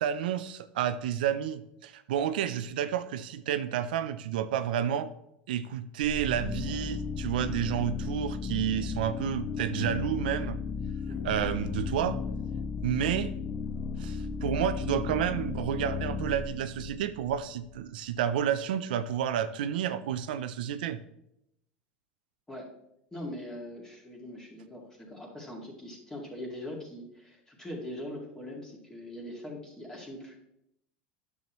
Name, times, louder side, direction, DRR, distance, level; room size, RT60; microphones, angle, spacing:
voice 1, 0.0-5.1 5.5-10.6 11.2-12.2 12.8-13.3 14.0-21.0, right 9 dB, 90° right, 12 dB, 0.5 m, -30 dB
sound 1, 6.0-17.8, left 5 dB, 35° left, 1.0 m, -35 dB
voice 2, 23.1-30.4, left 1 dB, 10° left, -2 dB, 2.0 m, -41 dB
9.3 x 6.9 x 3.0 m, 0.80 s
supercardioid pair, 120°, 5 cm